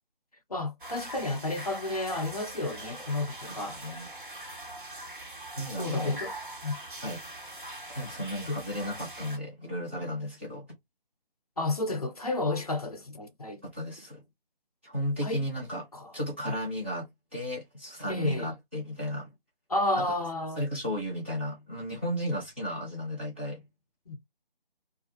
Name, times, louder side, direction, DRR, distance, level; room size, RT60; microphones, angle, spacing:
voice 1, 0.5-3.8 5.8-6.3 6.6-6.8 8.5-8.6 11.6-13.6 15.2-15.5 15.9-16.1 16.5-16.6 18.1-18.5 19.7-20.7 24.1-24.2, left 2 dB, 40° left, 0.6 m, -31 dB
sound 1, 0.8-9.4, right 1 dB, 60° right, 1.3 m, -42 dB
voice 2, 5.6-6.2 7.0-7.2 7.9-10.7 13.7-14.2 14.8-15.8 16.1-19.3 19.9-20.1 20.6-23.6, equal, 15° right, 0.8 m, -34 dB
2.4 x 2.4 x 2.9 m
figure-of-eight pair, 160°, 29 cm